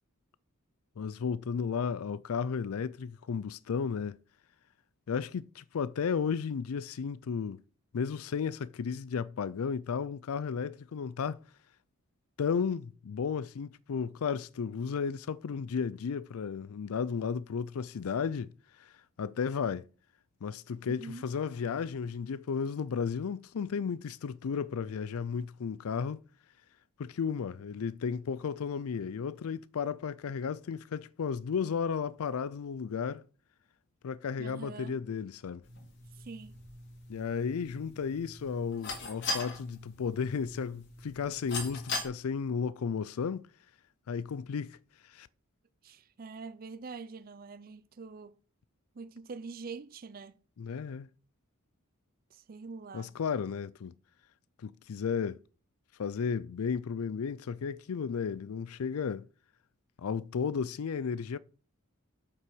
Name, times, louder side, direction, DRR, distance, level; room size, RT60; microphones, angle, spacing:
voice 1, 1.0-4.1 5.1-7.6 7.9-11.4 12.4-18.5 18.8-18.9 19.2-19.9 20.4-26.2 27.0-33.2 34.0-35.6 37.1-43.5 44.1-44.8 45.0-45.3 50.6-51.1 52.9-53.9 54.6-55.4 56.0-59.3 60.0-61.4, left 6 dB, 75° left, 0.4 m, -34 dB
voice 2, 20.9-21.2 34.4-35.0 36.2-36.5 45.8-48.3 49.0-50.3 52.3-53.1, right 4 dB, 40° right, 0.5 m, -44 dB
sound 1, 35.6-42.1, left 3 dB, 55° left, 3.0 m, -40 dB
7.8 x 5.9 x 6.1 m
head